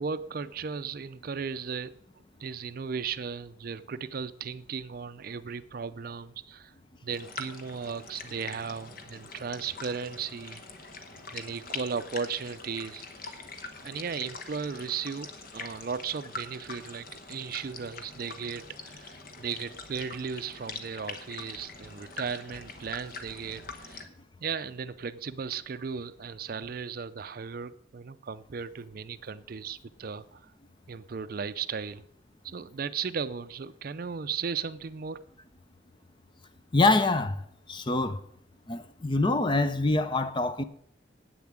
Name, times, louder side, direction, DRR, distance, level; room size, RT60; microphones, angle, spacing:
voice 1, 0.0-1.9 2.4-6.7 7.0-10.6 11.3-13.4 13.8-15.3 15.5-24.0 24.4-30.4 30.9-32.0 32.4-35.2, right 6 dB, 50° right, 0.4 m, -36 dB
sound 1, 7.1-24.0, left 4 dB, 50° left, 1.1 m, -43 dB
voice 2, 36.7-37.4 37.7-38.2 38.7-40.6, left 2 dB, 25° left, 0.5 m, -25 dB
8.8 x 7.1 x 7.4 m
head